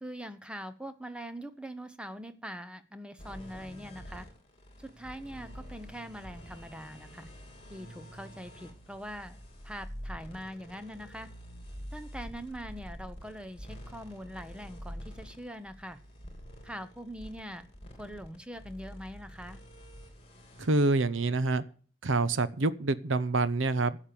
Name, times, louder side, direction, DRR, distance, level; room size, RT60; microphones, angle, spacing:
voice 1, 0.0-4.3 4.8-7.3 7.7-9.4 9.6-11.3 11.9-16.0 16.6-17.7 18.0-19.6, equal, 5° right, 11 dB, 0.8 m, -43 dB
sound 1, 3.2-20.7, equal, 30° left, 3.2 m, -47 dB
voice 2, 20.6-21.6 22.0-24.0, right 3 dB, 80° right, 16 dB, 0.8 m, -27 dB
12.0 x 7.3 x 6.8 m, 0.43 s
head